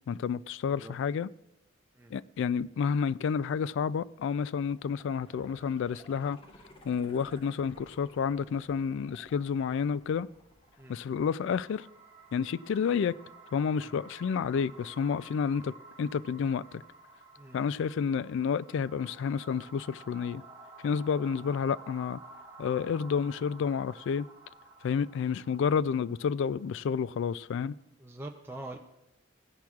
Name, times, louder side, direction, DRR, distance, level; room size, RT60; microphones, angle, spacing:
voice 1, 0.1-1.3 2.1-6.4 6.8-10.3 10.9-11.9 12.3-13.2 13.5-16.8 17.5-20.4 20.8-22.2 22.6-24.3 24.8-27.7, left 6 dB, 65° left, 18 dB, 0.3 m, -30 dB
sound 1, 4.7-11.6 12.0-12.1, left 1 dB, 30° left, 1.3 m, -55 dB
sound 2, 10.5-27.7, right 3 dB, 30° right, 1.1 m, -53 dB
voice 2, 28.0-28.8, right 2 dB, 10° right, 2 dB, 0.5 m, -44 dB
16.5 x 10.5 x 2.4 m, 0.89 s
head